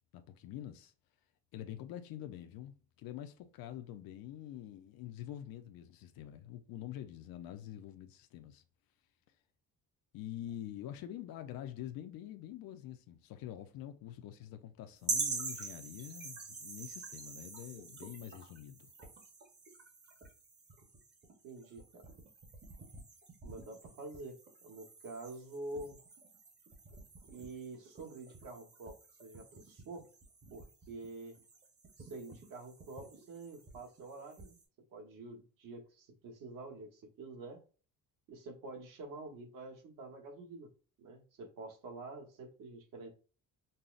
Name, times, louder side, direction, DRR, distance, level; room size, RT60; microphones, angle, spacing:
voice 1, 0.1-0.9 1.5-8.6 10.1-18.9, left 12 dB, 90° left, 0.5 m, -46 dB
sound 1, 15.0-34.6, right 4 dB, 30° right, 0.8 m, -46 dB
voice 2, 21.4-22.1 23.4-26.0 27.3-30.1 30.5-31.4 32.0-34.6 34.9-37.6 38.3-40.7 41.0-43.1, right 2 dB, 65° right, 1.1 m, -47 dB
5.3 x 2.0 x 2.4 m
cardioid pair, 170°, 34 cm